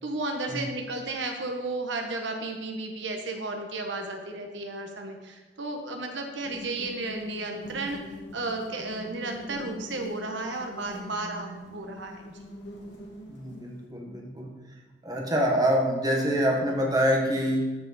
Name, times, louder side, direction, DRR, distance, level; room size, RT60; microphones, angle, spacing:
voice 1, 0.0-8.0 8.3-12.5, right 2 dB, 65° right, 3 dB, 1.0 m, -33 dB
sound 1, 6.4-13.9, equal, 65° left, 1.6 m, -44 dB
voice 2, 13.3-14.5 15.0-17.8, equal, 20° right, 0 dB, 1.2 m, -26 dB
13.5 x 4.9 x 4.2 m, 1.2 s
head